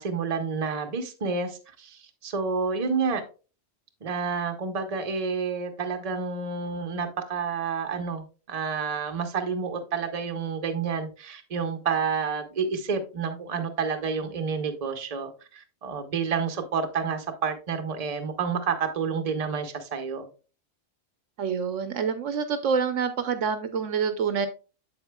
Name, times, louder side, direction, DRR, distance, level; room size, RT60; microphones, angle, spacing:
voice 1, 0.0-3.2 4.0-20.3, right 5 dB, 35° right, 6 dB, 0.9 m, -29 dB
voice 2, 21.4-24.5, right 6 dB, 70° right, 10 dB, 1.0 m, -27 dB
8.0 x 7.4 x 2.2 m, 0.34 s
omnidirectional pair, 1.3 m